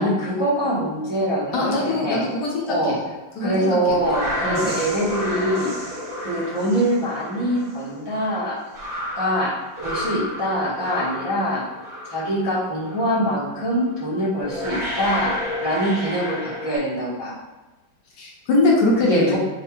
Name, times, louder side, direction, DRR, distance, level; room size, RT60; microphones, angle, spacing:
voice 1, 0.0-2.3 2.7-2.9 3.4-8.6 9.1-9.5 9.8-11.6 12.1-15.3 15.6-17.3 19.1-19.4, equal, 40° right, -11 dB, 0.3 m, -24 dB
voice 2, 1.5-3.0 3.4-4.0 4.4-4.7 18.2-19.4, left 2 dB, 70° left, -3 dB, 1.1 m, -22 dB
sound 1, 3.9-12.5 12.8-13.2 14.0-14.1 14.4-16.8, left 1 dB, 70° right, 2.0 m, -31 dB
4.2 x 2.3 x 2.9 m, 1.1 s
omnidirectional pair, 2.2 m